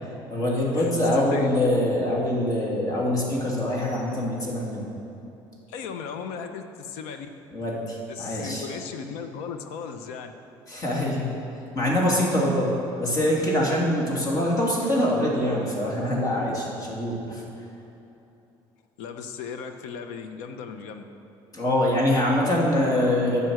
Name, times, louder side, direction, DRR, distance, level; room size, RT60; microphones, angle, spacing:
voice 1, 0.3-4.8 7.5-8.7 10.7-11.3 11.7-12.7 13.0-17.4 21.5-23.4, left 1 dB, 35° left, -3 dB, 2.8 m, -24 dB
voice 2, 5.7-7.3 8.1-10.3 19.0-21.0, left 6 dB, 90° left, 8 dB, 0.8 m, -36 dB
10.5 x 7.0 x 6.5 m, 2.9 s
cardioid pair, 115°, 10 cm